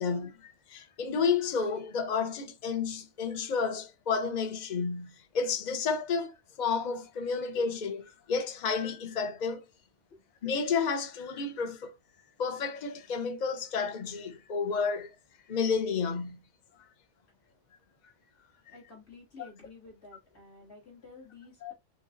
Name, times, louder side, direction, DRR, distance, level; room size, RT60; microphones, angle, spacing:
voice 1, 0.0-9.6 10.4-11.9 12.4-15.2 15.5-16.4 21.6-21.7, left 5 dB, 45° left, 0.8 m, -31 dB
voice 2, 18.7-21.7, left 3 dB, 60° left, 3.4 m, -51 dB
6.3 x 2.9 x 2.5 m
omnidirectional pair, 1.2 m